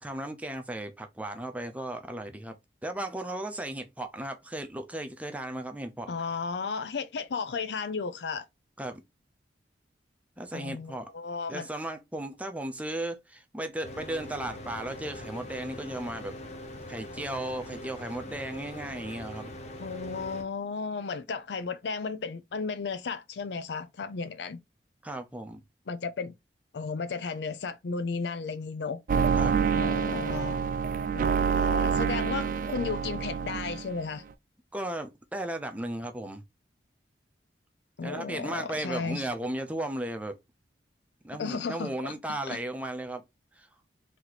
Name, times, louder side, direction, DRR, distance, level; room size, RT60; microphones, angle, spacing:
voice 1, 0.0-2.6 2.8-6.1 8.8-9.0 10.4-11.1 11.5-16.4 16.9-19.5 25.0-25.6 29.3-29.6 34.7-36.4 38.0-40.4 41.2-43.2 43.6-43.7, right 1 dB, 10° right, 0.6 m, -35 dB
voice 2, 6.1-8.5 10.5-11.7 19.8-24.6 25.9-26.3 26.7-29.0 29.7-30.6 31.1-34.2 38.0-39.3 41.4-42.1 42.5-42.6, left 5 dB, 70° left, 0.5 m, -34 dB
Mechanical fan, 13.8-20.4, left 1 dB, 40° left, 0.8 m, -42 dB
sound 1, 29.1-34.0, right 6 dB, 50° right, 0.4 m, -27 dB
3.1 x 2.8 x 4.0 m
head